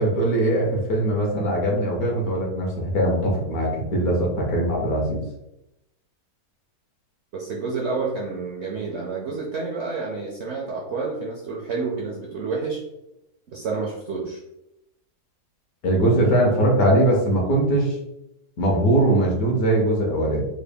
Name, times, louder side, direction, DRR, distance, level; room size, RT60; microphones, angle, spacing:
voice 1, 0.0-5.2 15.8-17.9 18.6-20.5, right 1 dB, 65° left, -1 dB, 1.4 m, -21 dB
voice 2, 7.3-12.8 13.5-14.4, right 4 dB, 65° right, -2 dB, 0.7 m, -29 dB
3.8 x 2.2 x 3.4 m, 0.87 s
omnidirectional pair, 1.7 m